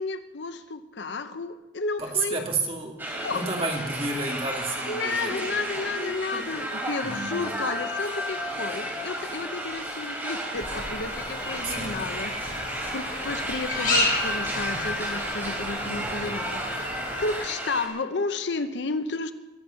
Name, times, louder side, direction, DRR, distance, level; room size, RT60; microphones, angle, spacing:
voice 1, 0.0-2.4 3.2-3.5 4.9-19.3, left 3 dB, 70° left, 0.8 m, -32 dB
voice 2, 2.0-3.0 3.3-5.6 7.0-7.4 11.6-12.1 15.7-16.4, right 3 dB, 30° right, 2.2 m, -31 dB
sound 1, 3.0-17.9, right 1 dB, 10° right, 3.0 m, -33 dB
sound 2, 7.0-9.2, left 3 dB, 5° left, 3.3 m, -39 dB
sound 3, 10.5-17.4, left 2 dB, 45° left, 5.0 m, -32 dB
22.0 x 7.8 x 5.8 m
head